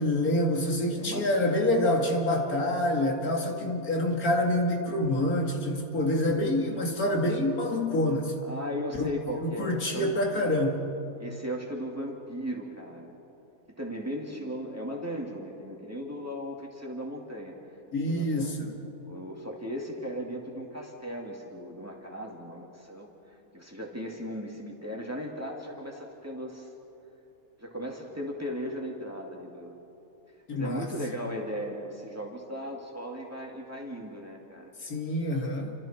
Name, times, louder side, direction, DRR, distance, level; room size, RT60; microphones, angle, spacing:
voice 1, 0.0-8.4 8.9-9.1 9.4-10.8 17.9-18.7 30.5-30.9 34.8-35.7, left 1 dB, 85° left, 1 dB, 2.7 m, -27 dB
voice 2, 0.9-1.3 8.4-10.1 11.2-13.1 13.7-17.5 18.1-18.5 19.0-23.1 23.5-26.7 27.6-29.8 30.5-34.7, equal, 10° right, -1 dB, 2.5 m, -37 dB
29.5 x 25.5 x 4.5 m, 2.9 s
omnidirectional pair, 1.5 m